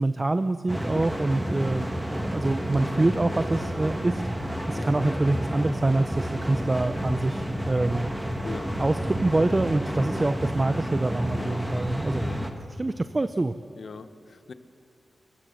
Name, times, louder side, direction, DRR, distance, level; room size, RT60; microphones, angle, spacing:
voice 1, 0.0-1.9 2.3-8.1 8.8-12.3 12.8-13.5, right 2 dB, 20° right, 11 dB, 0.5 m, -25 dB
sound 1, 0.7-12.5, equal, 5° right, 1.4 m, -30 dB
voice 2, 8.4-8.8 11.3-11.6 12.2-12.5 13.8-14.5, left 4 dB, 50° left, 11 dB, 1.0 m, -41 dB
27.0 x 15.0 x 6.5 m, 2.7 s
wide cardioid pair, 130°, 0 cm